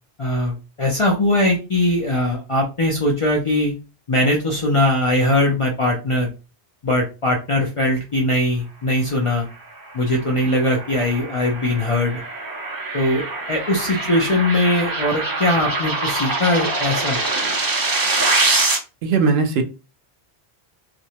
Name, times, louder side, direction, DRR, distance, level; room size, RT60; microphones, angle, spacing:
voice 1, 0.2-3.7 4.1-6.3 6.8-9.5 9.9-12.2 12.9-17.2, left 1 dB, 45° left, 0 dB, 0.5 m, -20 dB
sound 1, 9.9-18.8, right 2 dB, 35° right, 0.3 m, -24 dB
voice 2, 19.0-19.6, right 4 dB, 75° right, 6 dB, 0.8 m, -18 dB
2.5 x 2.0 x 2.8 m, 0.29 s
omnidirectional pair, 1.1 m